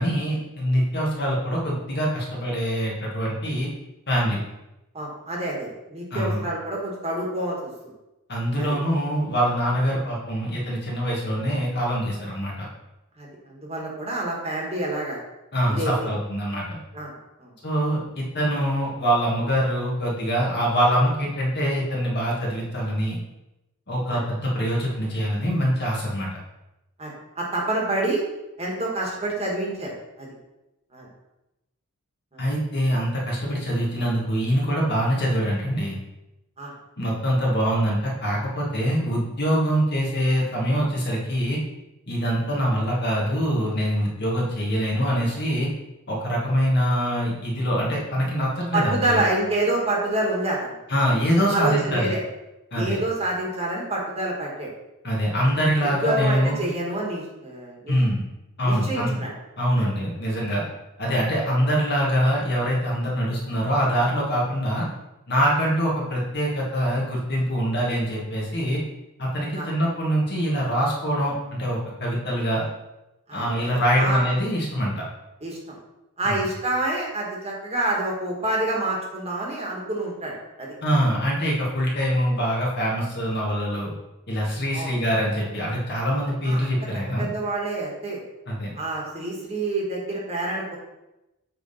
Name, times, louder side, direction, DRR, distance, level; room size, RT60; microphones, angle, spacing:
voice 1, 0.0-3.7 4.1-4.4 6.1-6.4 8.3-12.7 15.5-16.8 17.6-23.2 23.9-26.3 32.4-36.0 37.0-41.6 42.1-45.7 46.1-49.2 50.9-52.1 52.7-53.0 55.0-56.6 57.9-58.2 58.6-59.2 59.6-60.6 61.0-64.8 65.3-68.8 69.2-72.6 73.3-75.0 76.2-76.4 80.8-83.9 84.3-87.3 88.5-88.7, equal, 50° left, -3 dB, 1.7 m, -24 dB
voice 2, 4.9-7.7 8.6-8.7 13.2-15.2 15.7-15.9 16.9-17.1 17.4-17.5 24.1-24.2 27.0-27.1 27.4-28.2 28.6-29.9 30.2-30.3 30.9-31.1 32.3-32.4 36.6-36.7 48.7-50.7 51.5-52.2 52.7-54.7 55.8-57.9 58.6-59.3 59.8-59.9 69.5-69.7 73.3-73.4 73.9-74.2 75.4-75.6 76.2-80.3 80.6-80.7 84.7-85.0 86.4-86.6 87.2-88.2 88.7-90.8, right 2 dB, 30° right, -2 dB, 1.4 m, -27 dB
7.6 x 3.4 x 4.2 m, 0.96 s
head